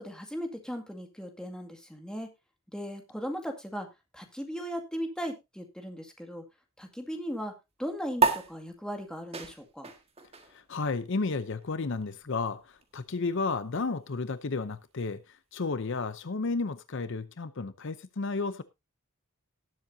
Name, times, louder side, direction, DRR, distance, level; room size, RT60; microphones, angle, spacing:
voice 1, 0.0-2.3 2.7-3.9 4.1-6.4 6.8-7.5 7.8-9.9, equal, 5° left, 2.1 m, -37 dB
sound 1, 8.2-15.0, right 4 dB, 30° right, 1.7 m, -34 dB
voice 2, 10.5-18.6, left 3 dB, 60° left, 0.7 m, -32 dB
18.5 x 7.6 x 2.7 m
head